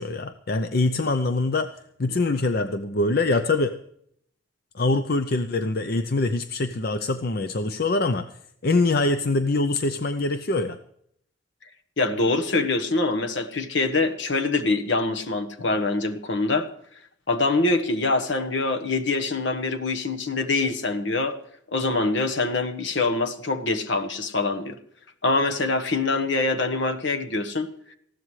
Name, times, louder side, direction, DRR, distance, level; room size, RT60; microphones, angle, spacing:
voice 1, 0.0-1.7 2.0-3.7 4.7-8.3 8.6-10.8, left 2 dB, 50° left, 9 dB, 0.6 m, -24 dB
voice 2, 12.0-16.7 17.3-21.3 21.7-24.8 25.2-27.9, left 3 dB, 65° left, 7 dB, 1.3 m, -24 dB
20.0 x 15.0 x 3.2 m, 0.68 s
head